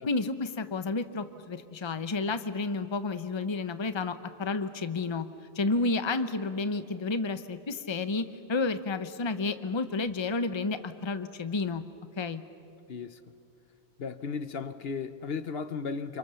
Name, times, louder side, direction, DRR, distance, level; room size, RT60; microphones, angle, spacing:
voice 1, 0.0-5.3 5.5-8.2 8.5-11.8 12.2-12.4, left 3 dB, 25° left, 0.9 m, -31 dB
voice 2, 12.9-13.2 14.0-16.2, left 5 dB, 65° left, 1.0 m, -35 dB
30.0 x 27.0 x 7.0 m
omnidirectional pair, 1.1 m